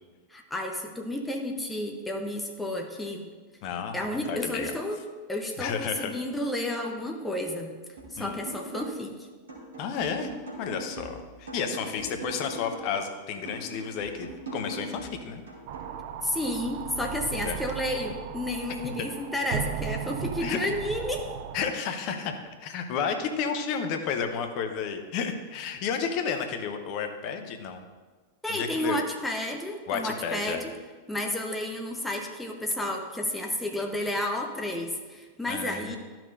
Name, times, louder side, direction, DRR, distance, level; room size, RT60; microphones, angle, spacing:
voice 1, 0.3-3.3 3.9-5.0 5.3-7.7 8.1-9.1 16.2-21.3 28.4-30.7 31.1-36.0, left 1 dB, 5° left, 2 dB, 0.9 m, -31 dB
voice 2, 3.6-4.7 5.6-6.1 8.2-8.4 9.8-10.3 10.6-15.4 17.4-17.6 20.4-20.6 21.5-27.8 28.5-29.0 29.9-30.6 35.5-36.0, left 6 dB, 45° left, 6 dB, 0.9 m, -32 dB
sound 1, 8.0-9.1 9.5-13.0 13.5-16.0, right 2 dB, 65° right, 2.4 m, -41 dB
sound 2, 15.7-21.7, right 8 dB, 50° right, 0.5 m, -36 dB
13.0 x 5.9 x 2.6 m, 1.4 s
figure-of-eight pair, 90°, 0 cm